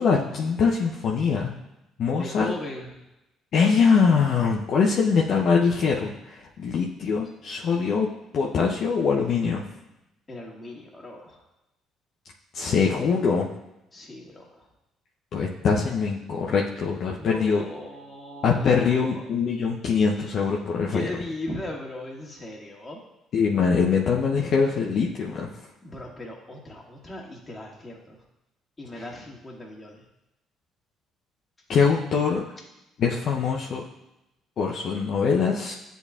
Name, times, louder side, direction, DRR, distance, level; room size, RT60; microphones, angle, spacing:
voice 1, 0.0-1.5 2.0-2.5 3.5-8.1 8.3-9.6 12.5-13.5 15.3-17.6 18.4-21.0 23.3-25.5 31.7-32.4 33.0-33.8 34.6-35.7, left 5 dB, 55° left, -2 dB, 0.7 m, -23 dB
voice 2, 2.2-2.9 10.3-11.4 13.9-14.7 17.2-19.2 20.9-23.0 25.8-28.2 28.8-30.0, left 1 dB, 25° left, -2 dB, 1.8 m, -38 dB
9.7 x 4.0 x 2.4 m, 0.92 s
hypercardioid pair, 50°, 0 cm